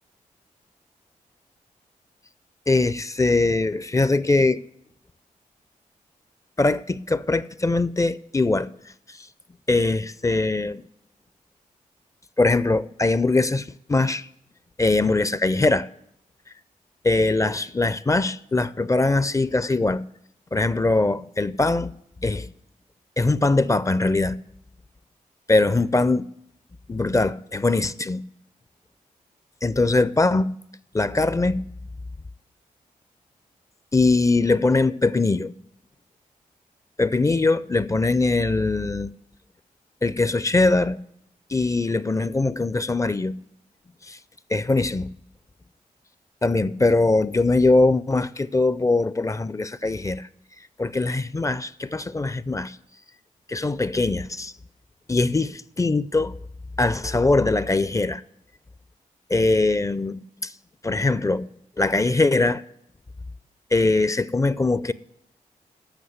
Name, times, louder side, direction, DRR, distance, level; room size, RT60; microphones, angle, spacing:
voice 1, 2.7-4.6 6.6-8.7 9.1-9.2 9.7-10.8 12.4-14.3 14.8-15.9 17.0-20.1 20.5-21.9 22.2-22.5 23.2-24.4 25.5-26.3 26.9-28.2 29.6-30.6 30.9-31.6 33.9-35.5 37.0-39.1 40.0-41.0 41.5-43.4 44.1-44.2 44.5-45.1 46.4-50.3 50.8-52.8 53.5-54.5 55.1-56.4 56.8-58.2 59.3-60.5 60.8-61.5 61.8-62.6 63.7-64.9, left 3 dB, 20° left, 0.4 m, -21 dB
8.0 x 6.1 x 7.9 m
supercardioid pair, 45°, 15 cm